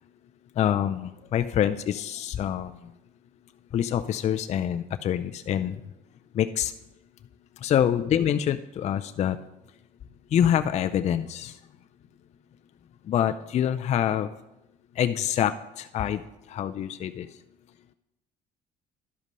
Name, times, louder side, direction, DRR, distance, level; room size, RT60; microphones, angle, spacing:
voice 1, 0.6-2.9 3.7-5.8 6.3-6.7 7.6-9.4 10.3-11.6 13.1-14.3 15.0-16.2 16.5-17.3, left 10 dB, 40° left, 9 dB, 0.4 m, -26 dB
11.0 x 5.2 x 5.3 m, 0.90 s
cardioid pair, 110°, 17 cm